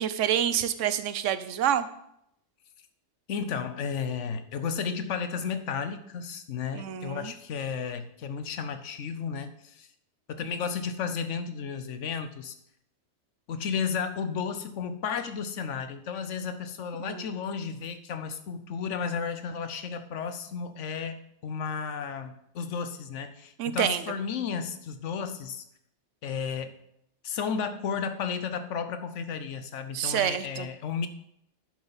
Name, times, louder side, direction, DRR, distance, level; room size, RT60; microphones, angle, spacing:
voice 1, 0.0-1.9 6.7-7.3 17.0-17.2 23.6-24.0 29.9-30.7, right 10 dB, 90° right, 13 dB, 1.0 m, -27 dB
voice 2, 3.3-9.9 10.3-12.5 13.5-25.6 26.2-26.8 27.2-31.1, left 6 dB, 80° left, 10 dB, 1.1 m, -33 dB
11.0 x 7.3 x 4.0 m, 0.77 s
omnidirectional pair, 1.2 m